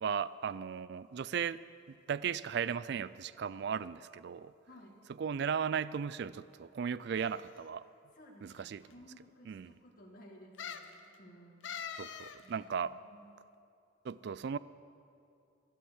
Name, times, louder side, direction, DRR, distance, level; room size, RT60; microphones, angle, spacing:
voice 1, 0.0-1.6 1.9-4.5 5.2-7.8 8.4-8.8 9.5-9.7 12.0-12.9 14.0-14.6, right 7 dB, 60° right, 18 dB, 0.3 m, -36 dB
voice 2, 4.7-5.1 7.1-7.4 8.1-11.8 12.4-13.4, equal, 45° left, -2 dB, 2.1 m, -57 dB
sound 1, 7.2-7.7 8.5-8.6 8.9-9.0 10.6-10.9 11.6-12.4 12.7-12.8, left 7 dB, 75° left, 0.7 m, -44 dB
15.5 x 11.5 x 6.4 m, 2.5 s
head